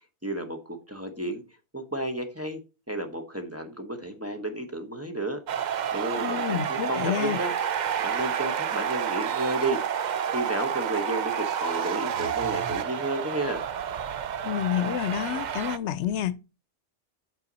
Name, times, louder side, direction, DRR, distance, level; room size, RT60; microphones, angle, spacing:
voice 1, 0.2-1.4 1.7-2.6 2.9-5.4 5.9-7.5 7.8-10.0 10.3-13.6, right 1 dB, 15° right, 1.0 m, -32 dB
sound 1, 5.5-15.8, right 8 dB, 55° right, 0.5 m, -29 dB
voice 2, 6.2-7.4 14.4-16.4, left 11 dB, 80° left, 0.9 m, -29 dB
7.3 x 5.6 x 4.0 m
omnidirectional pair, 1.2 m